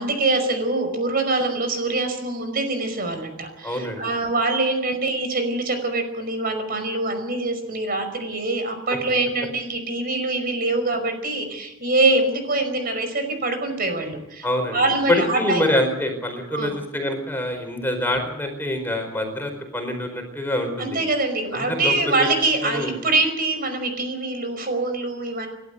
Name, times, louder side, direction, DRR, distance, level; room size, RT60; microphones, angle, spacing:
voice 1, 0.0-15.7 16.5-16.7 20.8-25.5, right 2 dB, 50° right, 7 dB, 5.3 m, -24 dB
voice 2, 3.6-4.0 14.4-14.8 15.1-21.0 21.5-22.3 22.6-23.0, left 1 dB, 10° left, 4 dB, 4.8 m, -25 dB
30.0 x 12.5 x 8.0 m, 0.93 s
head